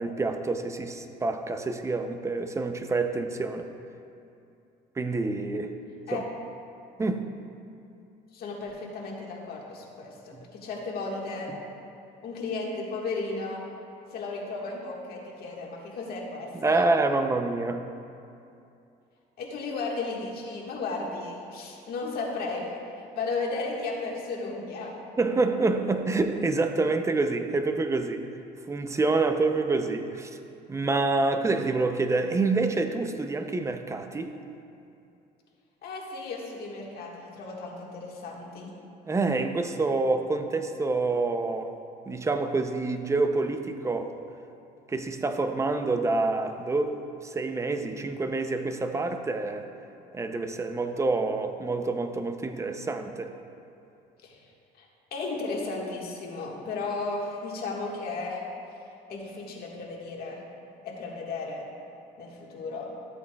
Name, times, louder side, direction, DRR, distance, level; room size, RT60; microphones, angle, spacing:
voice 1, 0.0-3.7 5.0-5.8 6.1-6.2 7.0-7.4 10.3-10.4 16.5-17.9 25.2-28.3 28.7-30.4 30.7-34.4 39.0-41.7 42.1-44.1 44.9-49.7 50.1-53.3, right 3 dB, 15° right, 7 dB, 0.5 m, -27 dB
voice 2, 8.3-11.5 12.2-13.6 14.1-16.9 19.4-24.9 35.8-38.7 54.2-54.4 54.8-58.4 59.1-60.4 60.8-61.7 62.2-62.9, left 3 dB, 65° left, -2 dB, 1.6 m, -34 dB
13.5 x 8.3 x 2.3 m, 2.6 s
cardioid pair, 110°, 17 cm